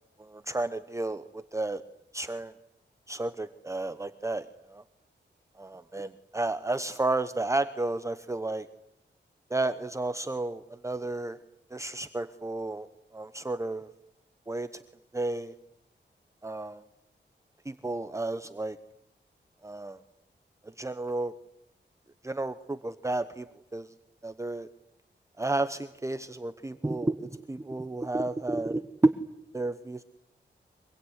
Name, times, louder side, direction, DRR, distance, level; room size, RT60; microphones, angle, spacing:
voice 1, 0.2-1.8 2.1-2.5 3.1-4.8 5.6-8.7 9.5-11.4 11.7-12.9 13.1-13.9 14.5-14.8 15.1-15.5 16.4-16.8 17.6-18.8 19.6-20.0 20.6-21.3 22.2-23.5 23.7-23.9 24.2-24.7 25.4-29.1 29.5-30.0, right 2 dB, 15° right, 11 dB, 1.0 m, -31 dB
25.0 x 23.5 x 9.7 m, 0.81 s
wide cardioid pair, 110°, 18 cm